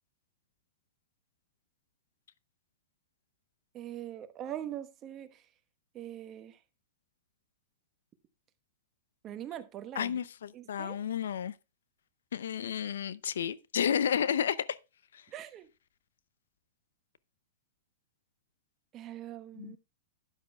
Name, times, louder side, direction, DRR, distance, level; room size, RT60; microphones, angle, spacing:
voice 1, 3.7-5.4 5.9-6.6 9.2-10.2 10.5-11.0 15.3-15.7 18.9-19.8, right 11 dB, 30° right, 1.1 m, -42 dB
voice 2, 10.0-11.5 12.3-14.6 19.6-19.8, left 8 dB, 80° left, 0.6 m, -31 dB
12.5 x 9.9 x 2.3 m
hypercardioid pair, 120°, 0 cm